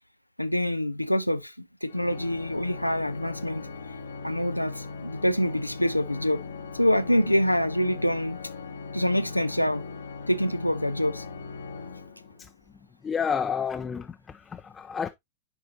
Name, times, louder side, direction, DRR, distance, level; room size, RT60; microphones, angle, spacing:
voice 1, 0.4-3.7 4.2-6.4 6.7-8.4 8.9-9.8 10.3-11.2, equal, 90° left, 0.4 m, -26 dB
Organ, 1.9-12.6, left 4 dB, 70° left, 1.1 m, -39 dB
voice 2, 13.0-15.1, left 6 dB, 20° left, 0.5 m, -30 dB
9.8 x 5.0 x 2.7 m
figure-of-eight pair, 90°, 0 cm